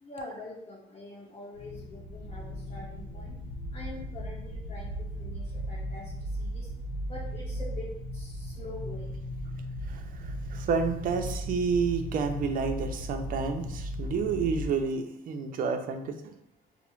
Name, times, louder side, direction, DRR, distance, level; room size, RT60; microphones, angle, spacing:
voice 1, 0.0-3.4 3.7-6.7 7.1-9.2, left 2 dB, 35° left, -6 dB, 0.8 m, -44 dB
sound 1, 1.6-14.7, equal, 85° left, 1.4 m, -37 dB
voice 2, 9.9-16.3, right 5 dB, 55° right, 5 dB, 0.5 m, -30 dB
4.8 x 2.0 x 3.0 m, 0.80 s
cardioid pair, 110°, 17 cm